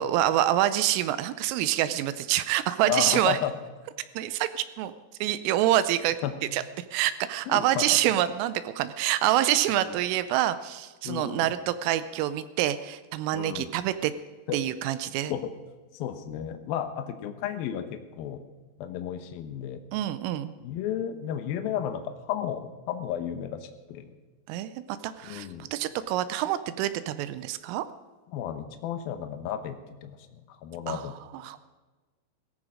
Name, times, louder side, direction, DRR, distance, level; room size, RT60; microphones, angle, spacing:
voice 1, 0.0-3.4 4.2-4.9 5.2-6.2 6.5-6.6 6.9-14.1 14.5-15.3 19.9-20.5 24.5-27.9 30.9-31.0 31.3-31.6, right 13 dB, 85° right, 13 dB, 3.3 m, -26 dB
voice 2, 2.9-3.5 6.2-6.3 7.5-8.0 9.8-10.0 11.0-11.6 13.3-13.7 14.5-14.6 15.3-15.5 15.9-18.4 18.8-19.8 20.6-24.1 25.2-25.7 28.3-31.2, left 10 dB, 90° left, 8 dB, 2.1 m, -33 dB
17.5 x 15.0 x 5.0 m, 1.2 s
omnidirectional pair, 5.8 m